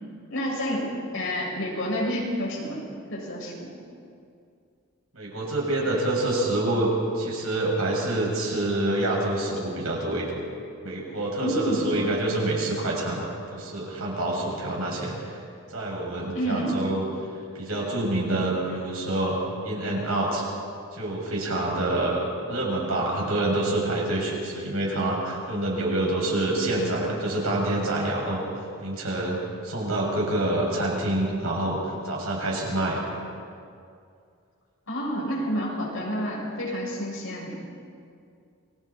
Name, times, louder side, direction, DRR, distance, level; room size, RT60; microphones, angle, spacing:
voice 1, 0.3-0.9 1.1-2.8 3.1-3.8 11.4-11.9 16.3-16.8 34.9-37.6, equal, 60° left, -3 dB, 6.7 m, -29 dB
voice 2, 5.1-10.3 10.8-15.4 15.7-17.0 17.5-19.4 19.6-20.4 20.9-22.2 22.5-33.0, right 1 dB, 70° right, -3 dB, 7.1 m, -27 dB
29.0 x 22.0 x 4.5 m, 2.4 s
head